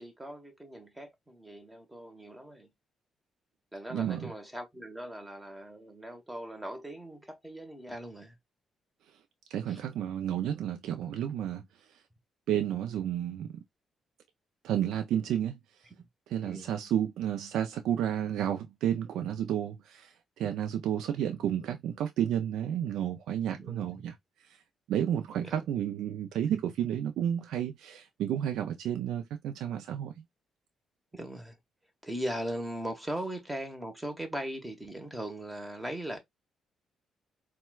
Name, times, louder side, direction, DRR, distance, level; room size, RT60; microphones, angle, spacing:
voice 1, 0.0-2.7 3.7-8.3 9.7-9.8 16.0-16.1 16.4-16.7 21.4-21.5 23.6-23.9 25.4-25.7 31.1-31.6 32.0-36.2, right 1 dB, 10° right, 1.1 m, -39 dB
voice 2, 3.9-4.3 9.5-11.6 12.5-13.6 14.6-15.6 16.3-24.1 24.9-30.1, right 10 dB, 85° right, 0.4 m, -31 dB
4.3 x 2.2 x 2.3 m
cardioid pair, 75°, 0 cm